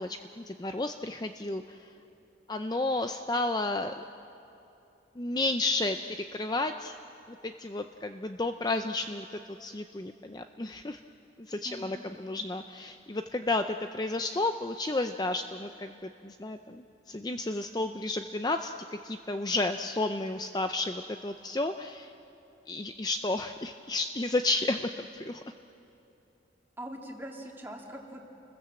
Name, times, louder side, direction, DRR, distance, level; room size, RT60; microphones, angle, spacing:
voice 1, 0.0-1.8 2.5-4.0 5.2-6.0 6.3-6.9 7.3-11.0 11.5-22.1 22.7-25.4, left 2 dB, 25° left, 7 dB, 0.5 m, -32 dB
voice 2, 11.6-12.1 26.8-28.3, equal, 10° right, 0 dB, 2.3 m, -42 dB
29.5 x 20.5 x 7.6 m, 2.8 s
head